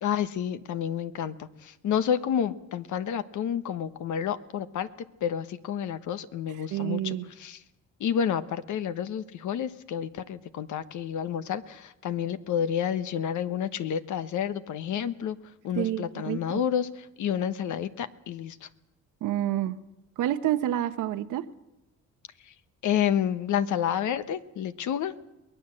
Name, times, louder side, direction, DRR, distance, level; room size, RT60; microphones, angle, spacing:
voice 1, 0.0-4.9 5.2-7.6 8.0-15.4 15.6-18.7 22.8-25.1, left 9 dB, 75° left, 12 dB, 1.3 m, -30 dB
voice 2, 6.7-7.2 15.8-16.6 19.2-19.8 20.2-21.4, right 12 dB, 90° right, 11 dB, 1.1 m, -28 dB
23.0 x 19.0 x 7.7 m, 0.96 s
cardioid pair, 90°, 30 cm